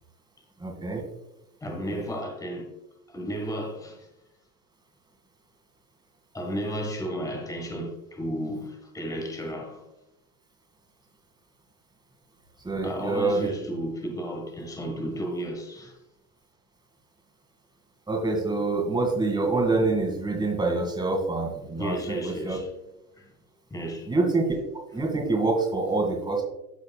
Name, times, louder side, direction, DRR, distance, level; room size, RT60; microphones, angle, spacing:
voice 1, 0.6-1.0 1.9-2.0 12.6-13.5 18.1-22.2 22.4-22.6 24.1-24.6 24.9-26.4, right 3 dB, 10° right, 2.2 m, -26 dB
voice 2, 1.6-2.7 3.1-4.1 6.3-9.8 12.8-16.0 21.8-22.7 23.2-23.3 23.7-24.1, equal, 5° left, 1.6 m, -33 dB
14.0 x 5.3 x 2.3 m
hypercardioid pair, 105°, 50 cm